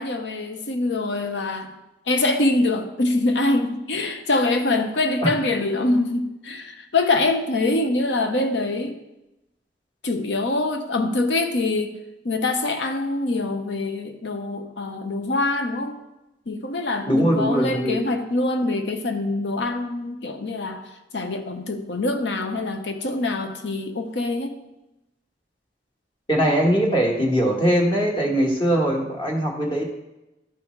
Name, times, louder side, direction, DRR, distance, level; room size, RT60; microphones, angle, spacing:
voice 1, 0.0-1.7 2.1-9.0 10.0-12.0 12.2-16.0 16.5-24.6, left 2 dB, 80° left, 6 dB, 0.8 m, -24 dB
voice 2, 17.1-18.0 26.3-29.9, equal, 25° left, -1 dB, 1.4 m, -21 dB
11.5 x 5.0 x 3.2 m, 0.95 s
head